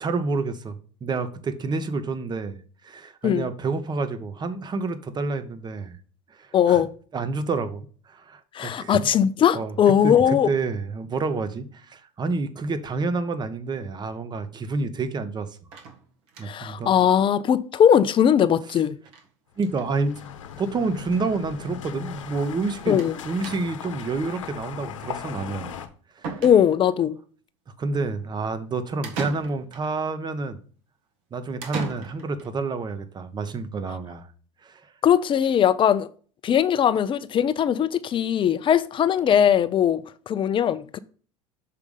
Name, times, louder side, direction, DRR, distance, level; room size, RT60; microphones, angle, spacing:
voice 1, 0.0-6.0 6.4-6.8 7.1-9.0 9.5-9.7 10.0-15.5 16.4-16.9 19.6-20.2 20.6-25.8 26.2-26.3 27.8-30.6 31.3-34.3 34.6-34.8, right 3 dB, 25° right, 0.9 m, -29 dB
voice 2, 6.5-6.9 8.5-10.5 16.4-19.0 22.9-23.1 26.4-27.2 35.0-36.1 36.4-41.0, left 9 dB, 30° left, 0.5 m, -20 dB
sound 1, 15.7-16.7 17.1-17.2 17.5-17.6 17.8-17.9 19.1-19.3 19.5-19.9 20.8-20.9 21.1-21.2 23.0-23.2 23.4-23.9 25.7-25.8 26.2-27.0 29.0-29.9 31.6-32.5, right 5 dB, 70° right, 1.7 m, -37 dB
sound 2, 19.6-25.9, left 8 dB, 85° left, 0.9 m, -38 dB
6.7 x 3.5 x 5.3 m
hypercardioid pair, 90°, 16 cm